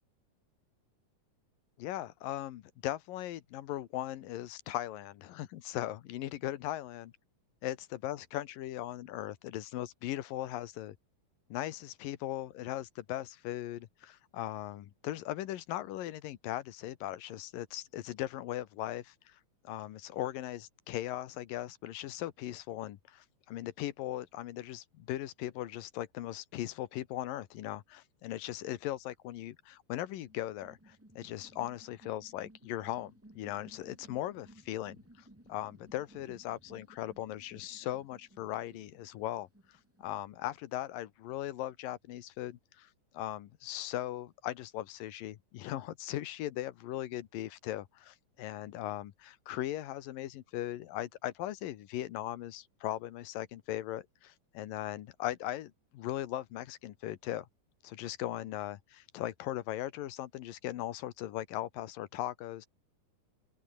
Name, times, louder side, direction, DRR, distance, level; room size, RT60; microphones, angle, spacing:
voice 1, 1.8-7.1 7.6-11.0 11.5-19.4 19.6-57.5 57.8-62.7, left 14 dB, 90° left, 2.9 m, -39 dB
sound 1, 30.2-40.3, right 1 dB, 5° right, 1.3 m, -59 dB
open air
omnidirectional pair, 3.9 m